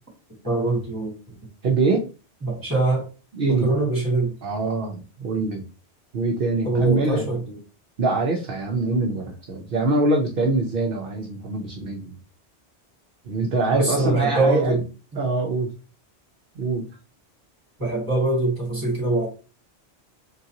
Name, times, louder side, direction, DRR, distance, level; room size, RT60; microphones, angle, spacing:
voice 1, 0.4-1.1 2.4-3.1 3.5-4.3 6.6-7.6 13.7-14.8 17.8-19.3, right 2 dB, 20° right, 2.2 m, -23 dB
voice 2, 1.6-2.0 3.3-3.7 4.4-5.6 6.1-7.2 8.0-12.1 13.2-14.8 15.2-15.7 16.5-16.9, right 3 dB, 60° right, 0.8 m, -24 dB
3.8 x 3.8 x 2.8 m
omnidirectional pair, 1.1 m